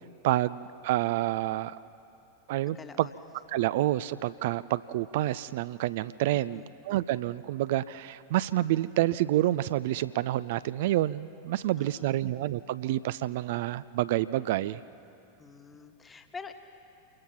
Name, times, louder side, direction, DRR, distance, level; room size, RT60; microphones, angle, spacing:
voice 1, 0.2-1.8 2.5-3.1 3.5-14.8, right 15 dB, 50° right, 16 dB, 0.4 m, -28 dB
voice 2, 2.6-3.1 6.3-6.7 11.8-12.2 15.4-16.5, left 5 dB, 15° left, 7 dB, 1.5 m, -46 dB
27.5 x 21.0 x 5.9 m, 3.0 s
figure-of-eight pair, 90°, 0 cm